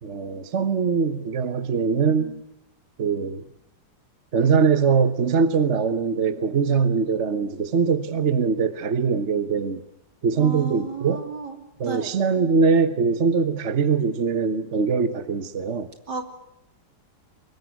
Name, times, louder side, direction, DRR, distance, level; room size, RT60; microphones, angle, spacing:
voice 1, 0.0-2.4 3.0-3.5 4.3-9.8 10.2-11.2 11.8-15.9, right 5 dB, 45° right, 11 dB, 1.3 m, -22 dB
voice 2, 10.4-11.5 11.8-12.1 16.1-16.2, right 4 dB, 65° right, 6 dB, 3.8 m, -33 dB
25.5 x 21.5 x 9.3 m, 0.81 s
omnidirectional pair, 2.0 m